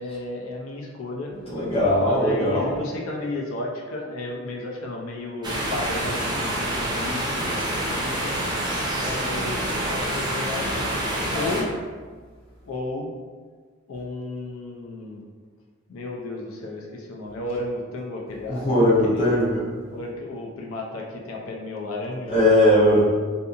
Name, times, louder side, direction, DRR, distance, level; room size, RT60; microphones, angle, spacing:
voice 1, 0.0-1.3 2.0-8.3 9.0-10.9 11.3-11.7 12.6-13.1 13.9-15.2 15.9-19.4 19.9-22.5, left 2 dB, 90° left, -1 dB, 0.4 m, -33 dB
voice 2, 1.4-2.8 8.7-8.9 9.7-9.8 18.5-19.7 22.3-23.0, left 1 dB, 30° left, -9 dB, 0.7 m, -20 dB
sound 1, 5.4-11.6, right 1 dB, 20° right, 0.4 m, -27 dB
2.7 x 2.5 x 2.5 m, 1.5 s
head